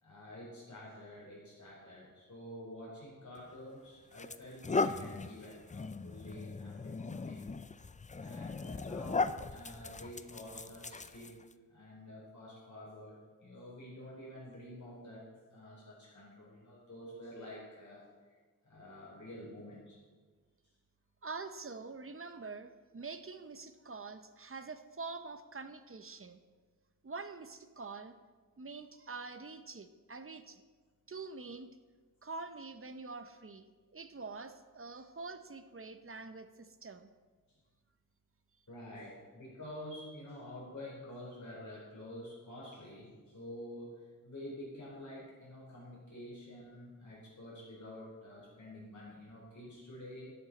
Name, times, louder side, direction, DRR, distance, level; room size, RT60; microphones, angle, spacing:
voice 1, 0.0-7.5 8.1-11.3 11.7-18.0 18.6-20.0 34.9-35.1 38.7-50.3, left 1 dB, 55° left, -6 dB, 4.3 m, -49 dB
sound 1, 3.4-3.5 4.1-11.5, left 4 dB, 25° left, 0.4 m, -38 dB
voice 2, 21.2-26.4 27.0-28.1 28.6-30.6 31.1-31.7 32.2-33.7 33.9-37.1, right 4 dB, 40° right, 10 dB, 0.7 m, -45 dB
11.5 x 11.5 x 4.2 m, 1.4 s
wide cardioid pair, 85°, 34 cm